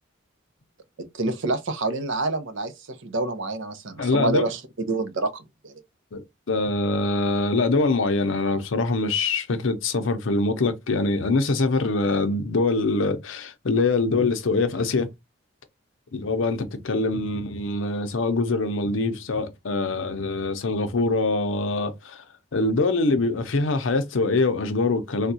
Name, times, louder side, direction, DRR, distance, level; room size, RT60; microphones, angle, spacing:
voice 1, 1.1-2.7 3.0-4.6 4.9-5.8, right 2 dB, 65° right, 0.6 m, -27 dB
voice 2, 4.0-4.5 6.1-15.1 16.1-22.2 22.5-25.3, left 3 dB, 70° left, 0.6 m, -24 dB
3.5 x 2.3 x 2.7 m
head